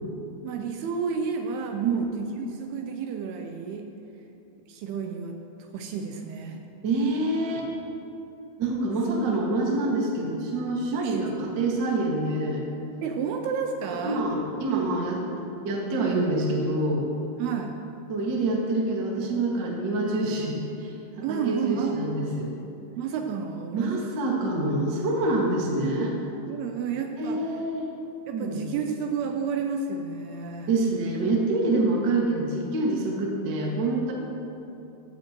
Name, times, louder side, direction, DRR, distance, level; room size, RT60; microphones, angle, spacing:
voice 1, 0.4-3.9 4.7-6.6 10.9-11.5 13.0-14.3 17.4-17.7 21.2-22.0 23.0-24.1 26.5-27.4 28.3-30.8, right 6 dB, 80° right, 4 dB, 2.5 m, -31 dB
voice 2, 6.8-7.7 8.6-12.6 14.0-15.2 15.6-17.1 18.1-21.0 21.3-22.5 23.7-26.2 27.2-27.9 28.3-28.6 30.7-34.1, right 2 dB, 50° right, -2 dB, 1.3 m, -26 dB
15.0 x 15.0 x 3.0 m, 2.8 s
omnidirectional pair, 4.9 m